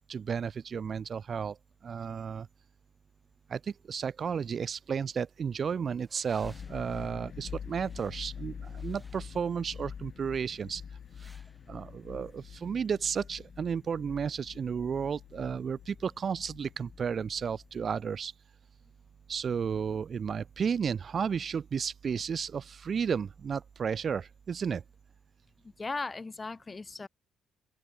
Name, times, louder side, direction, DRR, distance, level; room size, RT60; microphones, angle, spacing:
voice 1, 0.1-1.6 1.8-2.5 3.5-10.8 11.7-18.3 19.3-24.8, right 6 dB, 50° right, 0.4 m, -33 dB
sound 1, 4.3-12.7, right 1 dB, 5° right, 5.2 m, -65 dB
sound 2, 6.4-17.9, left 7 dB, 50° left, 0.4 m, -46 dB
voice 2, 25.6-27.1, left 3 dB, 25° left, 1.0 m, -37 dB
open air
cardioid pair, 90°, 0 cm